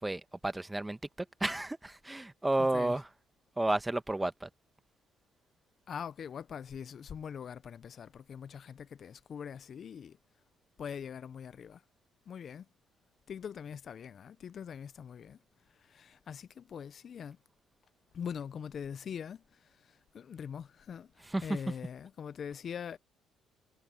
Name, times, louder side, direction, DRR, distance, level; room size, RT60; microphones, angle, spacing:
voice 1, 0.0-1.0 1.4-3.1 3.6-4.5 21.3-21.6, right 2 dB, 15° right, 1.5 m, -31 dB
voice 2, 2.6-3.0 5.9-10.2 10.8-11.8 12.3-12.7 13.3-15.4 15.7-17.4 18.1-23.0, left 7 dB, 55° left, 0.7 m, -43 dB
supercardioid pair, 60°, 0 cm